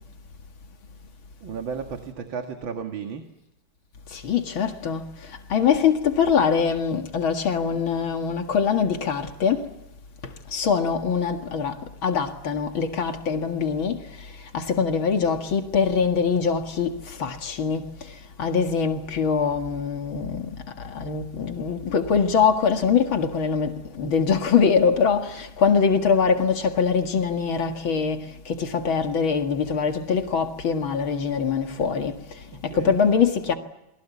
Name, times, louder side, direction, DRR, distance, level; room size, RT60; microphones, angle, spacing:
voice 1, 1.4-3.3 32.5-33.0, right 6 dB, 75° right, 2.5 m, -34 dB
voice 2, 4.2-5.0 5.5-9.6 10.5-11.7 12.0-14.0 14.5-16.9 17.2-17.9 18.4-20.5 20.9-32.1 32.6-33.6, left 6 dB, 85° left, 2.7 m, -23 dB
29.0 x 22.5 x 8.4 m
omnidirectional pair, 2.2 m